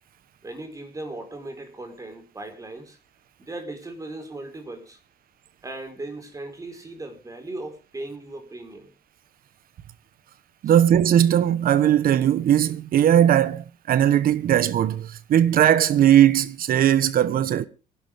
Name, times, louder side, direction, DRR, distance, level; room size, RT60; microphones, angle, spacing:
voice 1, 0.4-3.0 3.4-5.0 5.6-8.9 10.6-10.8, right 2 dB, 20° right, 4.6 m, -37 dB
voice 2, 10.6-17.7, right 10 dB, 50° right, 1.3 m, -19 dB
25.0 x 11.5 x 3.7 m
cardioid pair, 120°, 18 cm